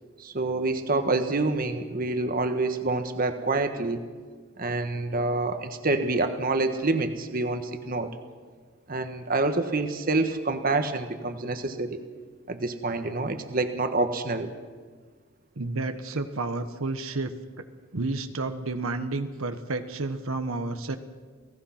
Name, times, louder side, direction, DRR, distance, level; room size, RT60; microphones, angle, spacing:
voice 1, 0.2-4.1 4.6-8.1 8.9-12.0 12.5-14.5, right 2 dB, 45° right, 8 dB, 1.3 m, -27 dB
voice 2, 15.6-17.3 17.9-21.0, right 3 dB, 85° right, 8 dB, 1.3 m, -30 dB
29.0 x 17.5 x 5.8 m, 1.5 s
head